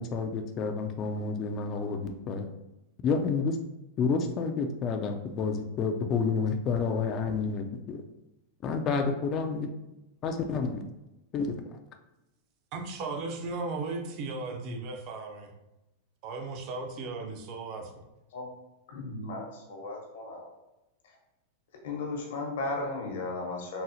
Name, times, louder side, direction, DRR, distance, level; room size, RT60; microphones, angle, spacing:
voice 1, 0.0-2.5 3.0-3.6 4.0-8.0 8.6-9.7 10.2-10.8 11.3-11.6, left 5 dB, 35° left, 4 dB, 0.3 m, -29 dB
voice 2, 12.7-15.5 16.2-17.9, right 3 dB, 45° right, 3 dB, 0.6 m, -36 dB
voice 3, 18.9-20.5 21.0-21.2 21.8-23.8, left 2 dB, 75° left, 0 dB, 0.9 m, -35 dB
3.9 x 2.0 x 2.7 m, 0.94 s
hypercardioid pair, 130°, 0 cm